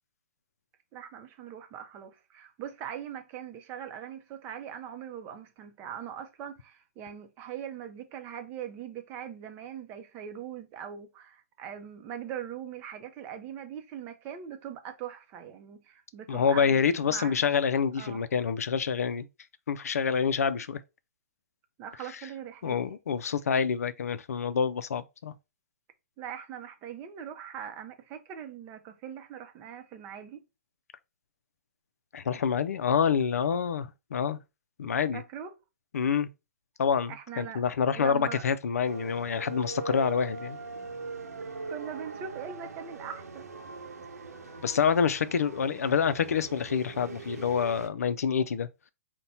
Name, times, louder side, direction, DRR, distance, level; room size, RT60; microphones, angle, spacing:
voice 1, 0.9-16.8 17.1-17.4 17.9-18.2 21.8-22.8 26.2-30.4 35.1-35.5 37.1-37.6 37.9-38.4 41.7-43.5, right 9 dB, 25° right, 0.6 m, -41 dB
voice 2, 16.3-19.3 19.7-20.8 22.6-25.3 32.1-34.4 34.8-35.2 35.9-36.3 36.8-40.6 44.6-48.7, left 6 dB, 75° left, 0.4 m, -27 dB
sound 1, 38.8-47.9, right 4 dB, 85° right, 0.9 m, -41 dB
4.1 x 2.2 x 4.0 m
hypercardioid pair, 135°, 8 cm